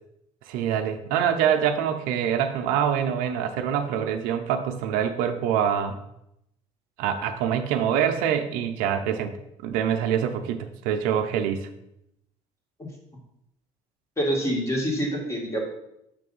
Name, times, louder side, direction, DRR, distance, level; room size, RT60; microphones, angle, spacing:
voice 1, 0.5-6.0 7.0-9.3 9.6-11.7, right 8 dB, 85° right, 6 dB, 0.7 m, -25 dB
voice 2, 14.2-15.6, equal, 20° left, -1 dB, 2.1 m, -26 dB
6.7 x 3.3 x 5.5 m, 0.81 s
supercardioid pair, 95°, 14 cm